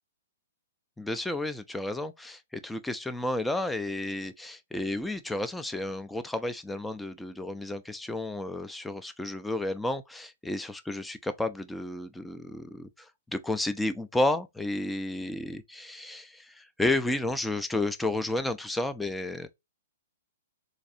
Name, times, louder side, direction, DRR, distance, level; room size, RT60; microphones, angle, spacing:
voice 1, 1.0-19.5, left 2 dB, 5° left, 0.4 m, -32 dB
3.9 x 2.6 x 2.4 m
figure-of-eight pair, 115°, 0 cm